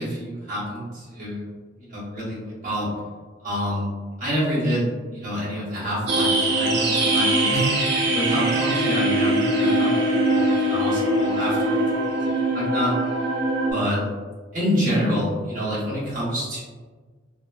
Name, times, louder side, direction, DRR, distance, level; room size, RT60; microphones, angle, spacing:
voice 1, 0.0-1.4 1.7-2.9 3.4-3.9 4.2-12.9 13.7-14.1 14.5-16.6, equal, 45° right, -8 dB, 1.0 m, -27 dB
sound 1, 6.1-13.7, right 2 dB, 60° right, 0.4 m, -22 dB
Bowed string instrument, 8.2-12.2, left 5 dB, 70° left, 0.5 m, -27 dB
3.0 x 2.0 x 2.2 m, 1.4 s
head